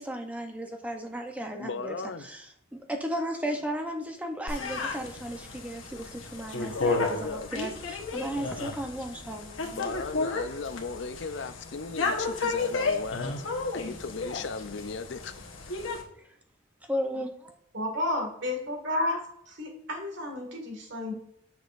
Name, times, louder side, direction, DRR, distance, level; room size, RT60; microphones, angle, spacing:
voice 1, 0.0-2.0 2.2-2.5 2.7-9.9 16.9-17.5, equal, 5° right, 0.7 m, -35 dB
voice 2, 1.6-2.3 6.7-7.5 9.8-13.5 13.7-15.3, left 4 dB, 60° left, 0.5 m, -36 dB
sound 1, 4.5-16.0, left 3 dB, 85° left, 1.1 m, -33 dB
voice 3, 17.7-21.1, left 1 dB, 65° right, 1.9 m, -32 dB
6.9 x 6.0 x 2.5 m
head